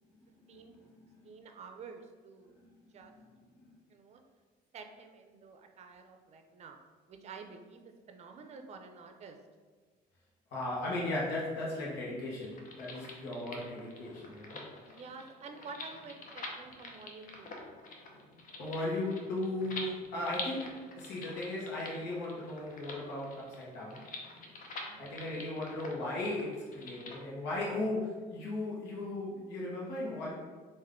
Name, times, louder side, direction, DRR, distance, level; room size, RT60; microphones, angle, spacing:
voice 1, 0.5-1.1 2.6-2.7 3.0-3.1 3.6-3.8 10.5-14.6 18.6-24.0 25.0-30.3, left 2 dB, 85° left, -5 dB, 1.1 m, -37 dB
voice 2, 1.2-2.5 2.9-3.1 3.9-4.2 4.7-6.8 7.1-7.8 8.1-9.4 14.8-17.5 24.8-25.1, right 4 dB, 40° right, 5 dB, 0.5 m, -49 dB
sound 1, 12.4-27.2, left 3 dB, 55° left, 0.7 m, -46 dB
3.5 x 2.6 x 3.6 m, 1.4 s
cardioid pair, 110°, 17 cm